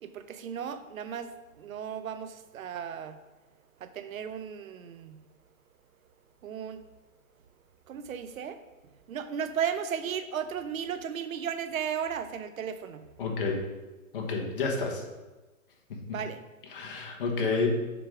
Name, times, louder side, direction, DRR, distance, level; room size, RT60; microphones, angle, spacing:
voice 1, 0.0-3.2 3.8-5.2 6.4-6.8 7.9-8.6 9.1-13.0 16.1-16.4, right 8 dB, 75° right, 10 dB, 0.7 m, -35 dB
voice 2, 13.2-13.6 14.1-15.0 16.7-17.7, left 4 dB, 40° left, 1 dB, 1.1 m, -29 dB
6.9 x 3.7 x 4.9 m, 1.2 s
hypercardioid pair, 170°, 41 cm